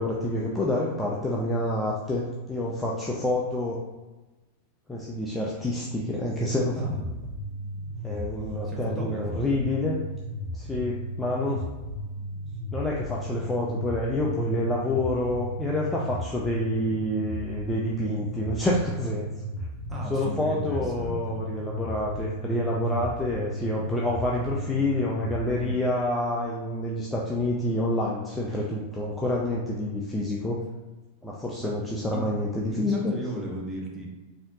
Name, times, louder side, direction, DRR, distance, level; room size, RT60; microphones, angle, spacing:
voice 1, 0.0-3.8 4.9-6.8 8.0-10.0 10.5-11.7 12.7-19.3 20.1-30.6 31.2-33.1, left 1 dB, 10° left, -4 dB, 0.6 m, -28 dB
sound 1, 6.7-25.7, equal, 35° right, 0.9 m, -35 dB
voice 2, 8.6-9.4 19.9-21.4 31.6-31.7 32.1-32.3 32.7-34.1, equal, 15° right, -4 dB, 1.2 m, -35 dB
4.1 x 2.9 x 3.7 m, 1.2 s
figure-of-eight pair, 90°, 0 cm